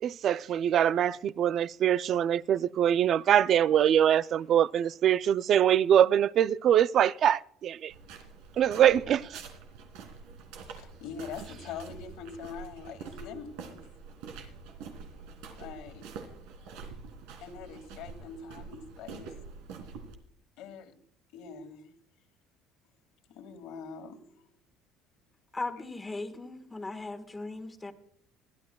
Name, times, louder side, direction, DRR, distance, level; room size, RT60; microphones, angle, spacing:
voice 1, 0.0-7.9 8.6-9.4, right 10 dB, 45° right, 0.4 m, -24 dB
sound 1, 7.9-20.1, right 5 dB, 90° right, 2.8 m, -46 dB
voice 2, 10.7-13.8 15.6-16.1 17.4-19.3 20.6-20.9 21.3-21.9 23.3-24.5, left 6 dB, 75° left, 2.2 m, -43 dB
voice 3, 25.5-27.9, left 2 dB, 15° left, 1.5 m, -38 dB
22.0 x 14.0 x 2.3 m
cardioid pair, 135°, 0 cm